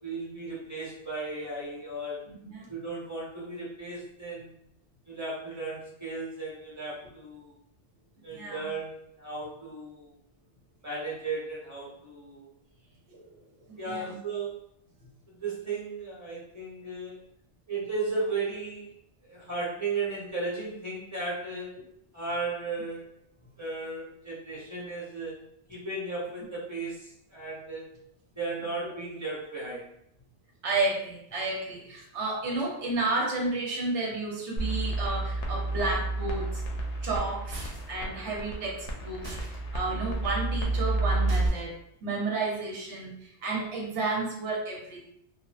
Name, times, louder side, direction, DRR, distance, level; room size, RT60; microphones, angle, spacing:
voice 1, 0.0-2.3 2.7-4.5 5.1-7.5 8.2-10.1 10.8-12.5 13.8-14.5 15.3-17.2 17.7-18.9 19.2-21.8 22.1-23.2 23.6-25.4 25.7-27.9 28.4-29.9, right 3 dB, 15° right, -6 dB, 0.8 m, -35 dB
voice 2, 2.3-2.7 8.3-8.7 13.1-14.2 28.8-28.9 30.6-36.6 37.0-45.1, right 3 dB, 90° right, -2 dB, 1.1 m, -32 dB
sound 1, 34.6-41.5, right 2 dB, 90° left, 0.9 m, -31 dB
sound 2, 37.5-38.0 39.2-39.6 41.3-41.8, right 1 dB, 35° right, 0.3 m, -43 dB
2.9 x 2.1 x 2.4 m, 0.72 s
omnidirectional pair, 1.2 m